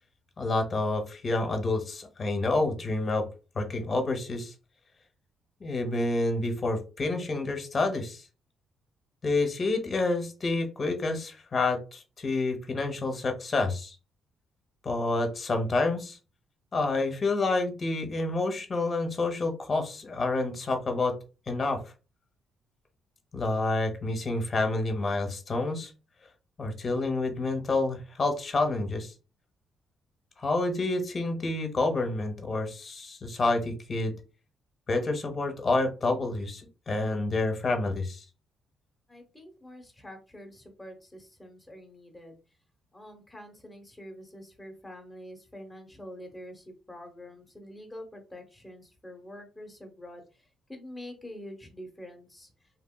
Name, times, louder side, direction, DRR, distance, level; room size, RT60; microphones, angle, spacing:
voice 1, 0.4-3.2 3.5-4.5 5.6-8.2 9.2-14.0 14.8-16.2 16.7-21.1 21.5-21.8 23.3-25.9 26.6-29.1 30.4-34.1 34.9-38.2, left 2 dB, 40° left, 5 dB, 0.8 m, -28 dB
voice 2, 39.1-42.4 42.9-52.5, left 1 dB, 5° left, 3 dB, 1.0 m, -46 dB
2.9 x 2.7 x 2.3 m, 0.31 s
cardioid pair, 90°, 0 cm